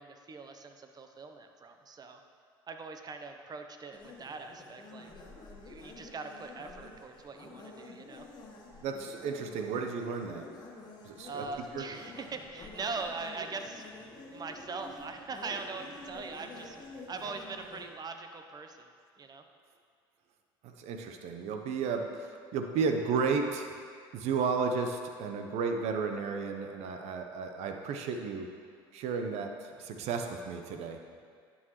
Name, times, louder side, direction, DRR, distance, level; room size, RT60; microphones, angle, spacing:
voice 1, 0.0-2.2 2.7-5.1 5.6-8.3 11.3-13.8 14.3-16.8 17.1-18.9 19.2-19.4, right 4 dB, 35° right, 6 dB, 0.8 m, -41 dB
sound 1, 3.9-17.9, left 2 dB, 35° left, 1.5 m, -49 dB
voice 2, 8.8-10.5 11.0-11.5 11.7-11.9 20.6-23.7 24.1-28.5 28.9-31.0, right 5 dB, 65° right, 5 dB, 0.8 m, -33 dB
10.5 x 6.4 x 3.1 m, 2.1 s
hypercardioid pair, 70°, 12 cm